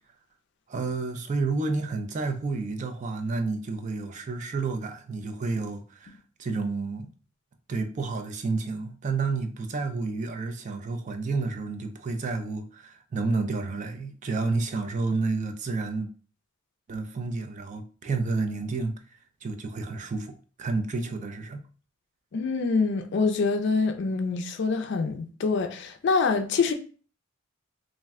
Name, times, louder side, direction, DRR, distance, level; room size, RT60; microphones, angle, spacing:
voice 1, 0.7-7.1 7.7-16.1 16.9-18.9 19.4-21.6, right 3 dB, 35° right, 0.3 m, -30 dB
voice 2, 22.3-26.7, left 4 dB, 55° left, 0.4 m, -25 dB
2.5 x 2.1 x 3.4 m
head